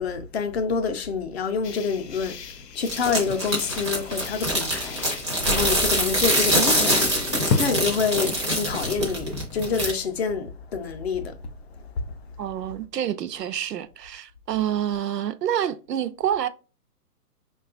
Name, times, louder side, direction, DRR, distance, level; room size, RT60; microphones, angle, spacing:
voice 1, 0.0-2.3 2.8-5.0 5.5-7.0 7.6-11.3, left 5 dB, 45° left, 0.5 m, -27 dB
sound 1, 1.6-7.7, left 5 dB, 85° left, 0.7 m, -34 dB
Crackling Plastic, 2.9-9.9, equal, 20° right, 0.4 m, -24 dB
voice 2, 12.4-16.5, right 10 dB, 90° right, 0.6 m, -27 dB
5.2 x 2.3 x 2.4 m
hypercardioid pair, 135°, 47 cm